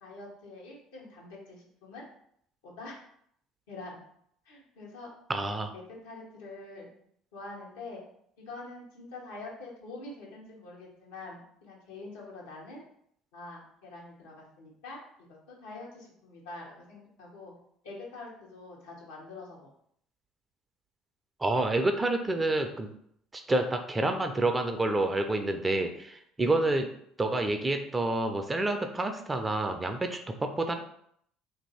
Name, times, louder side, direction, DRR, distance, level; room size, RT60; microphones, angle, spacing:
voice 1, 0.0-2.0 2.6-3.0 3.7-4.0 4.4-5.1 5.7-6.9 7.3-8.0 8.4-12.8 13.3-15.0 15.3-17.5 17.8-19.7, left 2 dB, 70° left, -3 dB, 1.1 m, -45 dB
voice 2, 5.3-5.7 21.4-22.9 23.3-26.9 27.2-30.7, right 2 dB, 20° right, 6 dB, 0.5 m, -28 dB
2.9 x 2.7 x 4.1 m, 0.68 s
figure-of-eight pair, 60°, 0 cm